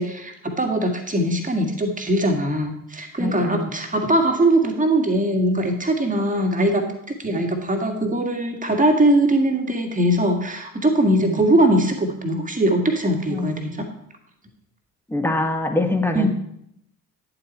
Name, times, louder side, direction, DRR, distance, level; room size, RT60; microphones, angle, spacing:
voice 1, 0.0-13.9 16.1-16.3, right 1 dB, 15° right, 4 dB, 2.0 m, -21 dB
voice 2, 3.2-3.7 7.5-7.6 11.2-11.4 13.3-13.7 15.1-16.3, left 2 dB, 5° left, 6 dB, 1.5 m, -24 dB
10.5 x 7.8 x 4.4 m, 0.75 s
figure-of-eight pair, 50°, 47 cm